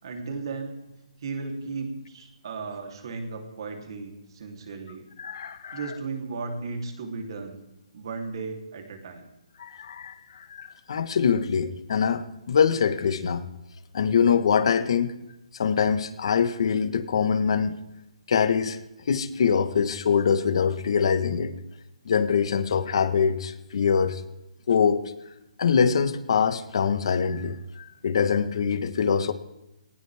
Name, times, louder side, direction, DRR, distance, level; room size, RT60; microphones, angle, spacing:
voice 1, 0.0-0.8 1.2-5.1 5.7-7.6 7.9-9.3, right 4 dB, 45° right, 3 dB, 3.4 m, -35 dB
voice 2, 5.2-5.8 9.6-13.5 13.9-15.1 15.6-17.8 18.3-18.8 19.1-21.5 22.0-24.2 24.7-25.1 25.6-29.3, left 6 dB, 50° left, 11 dB, 1.4 m, -24 dB
19.5 x 19.0 x 3.6 m, 0.94 s
hypercardioid pair, 170°, 4 cm